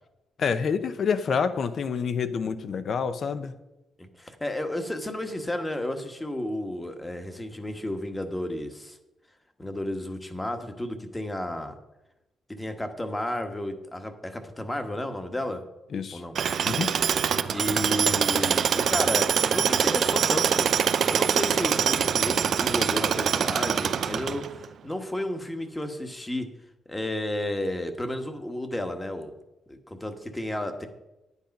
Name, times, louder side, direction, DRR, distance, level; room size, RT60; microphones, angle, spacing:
voice 1, 0.4-3.5 15.9-16.2 16.7-16.9, left 6 dB, 55° left, 12 dB, 0.8 m, -27 dB
voice 2, 4.0-9.0 9.6-11.7 12.5-15.6 16.1-16.4 17.5-20.7 21.1-26.5 26.9-29.3 29.7-30.9, left 1 dB, 15° left, 7 dB, 1.2 m, -32 dB
Tools, 16.4-24.7, right 7 dB, 60° right, 0.5 m, -24 dB
10.0 x 8.3 x 5.3 m, 0.96 s
cardioid pair, 105°, 0 cm